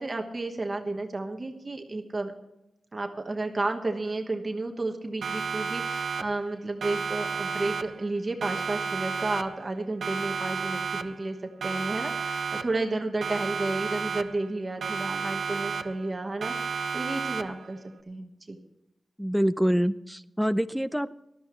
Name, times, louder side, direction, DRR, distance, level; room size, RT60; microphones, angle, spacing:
voice 1, 0.0-2.3 2.9-17.8 18.1-18.6, right 2 dB, 25° right, 4 dB, 1.3 m, -32 dB
Siren, 5.2-6.5 6.8-8.1 8.4-9.7 10.0-11.3 11.6-12.9 13.2-14.5 14.8-16.1 16.4-17.7, right 5 dB, 85° right, 0.8 m, -32 dB
voice 2, 19.2-21.1, equal, ahead, 13 dB, 0.5 m, -26 dB
19.0 x 13.5 x 3.1 m, 0.86 s
wide cardioid pair, 160°, 0 cm